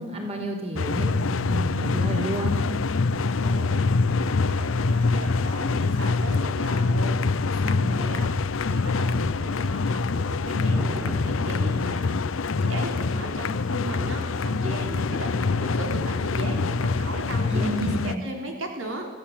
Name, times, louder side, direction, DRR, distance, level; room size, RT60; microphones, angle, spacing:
voice 1, 0.0-2.7 17.5-18.2, right 1 dB, 30° right, 2 dB, 4.4 m, -30 dB
sound 1, 0.8-18.1, left 3 dB, 75° left, 0.6 m, -25 dB
voice 2, 3.3-8.3 8.7-19.1, right 1 dB, 80° right, 2 dB, 3.8 m, -37 dB
Thunder, 10.6-14.5 14.8-14.9, equal, 5° right, 1.5 m, -42 dB
25.0 x 15.5 x 8.7 m, 1.3 s
head